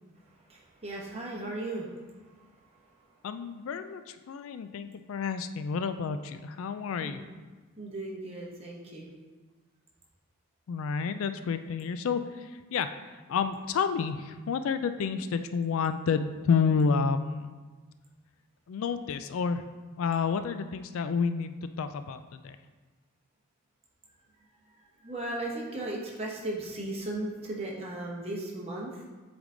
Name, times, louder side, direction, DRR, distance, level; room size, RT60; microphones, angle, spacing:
voice 1, 0.5-1.9 7.0-7.2 7.8-9.1 25.0-29.0, right 2 dB, 30° right, -4 dB, 1.1 m, -36 dB
voice 2, 3.2-7.2 10.7-17.5 18.7-19.6 20.0-22.6, left 5 dB, 70° left, 10 dB, 0.3 m, -30 dB
8.0 x 3.5 x 3.8 m, 1.3 s
head